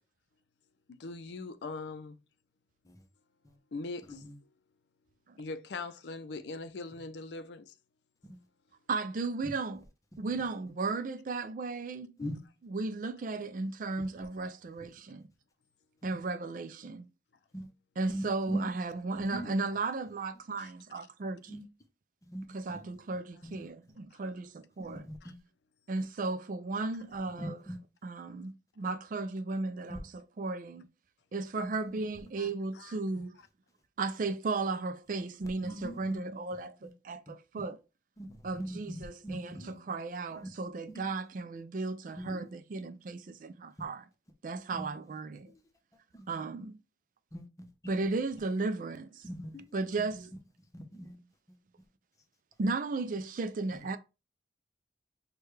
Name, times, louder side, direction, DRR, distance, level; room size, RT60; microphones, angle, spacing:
voice 1, 0.9-2.2 3.7-4.2 5.4-7.7 20.6-20.7 24.1-24.2 25.2-25.3 32.4-32.5 32.7-33.0, left 3 dB, 75° left, 0.5 m, -41 dB
voice 2, 8.9-9.8 10.2-12.1 12.6-15.3 16.0-17.1 18.0-21.6 22.5-25.1 25.9-27.6 28.0-30.9 31.3-33.4 34.0-37.8 38.4-44.1 44.4-45.5 46.3-46.8 47.9-49.3 49.7-50.3 52.6-54.0, right 3 dB, 50° right, 0.4 m, -35 dB
voice 3, 18.1-18.6 19.3-19.5 21.5-21.6 22.2-22.4 23.4-23.7 24.9-25.3 27.4-27.8 29.9-30.0 35.6-36.2 36.5-36.9 37.6-37.7 38.2-38.3 38.6-39.8 40.4-40.5 40.9-41.0 42.2-42.4 44.7-44.9 46.1-46.3 47.3-47.4 47.8-47.9 49.2-49.6 50.7-51.2, equal, 20° left, 0.7 m, -40 dB
6.4 x 2.3 x 3.2 m
head